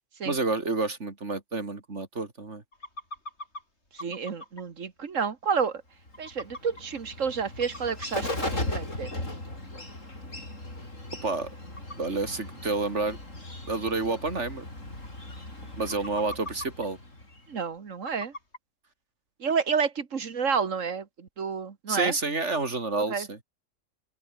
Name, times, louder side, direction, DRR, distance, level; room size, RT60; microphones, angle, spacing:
voice 1, 0.2-2.6 11.2-11.5 12.0-13.2 13.7-14.7 15.8-17.0 21.9-23.4, right 3 dB, 65° right, 3.4 m, -29 dB
sound 1, 2.7-3.6 4.0-4.7 5.2-5.3 5.6-5.7 6.1-6.8 7.3-7.4 7.6-8.5 8.9-9.0 10.2-10.3 10.6-10.7 11.8-12.0 12.8-12.9 13.5-13.6 13.8-13.9 14.2-14.3 14.7-14.8 15.0-15.4 15.7-16.9 18.1-18.6, left 1 dB, 60° left, 6.9 m, -40 dB
voice 2, 3.9-5.8 6.2-9.2 17.5-18.3 19.4-22.2 23.1-23.3, right 6 dB, 80° right, 2.0 m, -30 dB
Bird, 6.1-17.5, left 1 dB, 75° left, 7.5 m, -38 dB
open air
omnidirectional pair, 1.3 m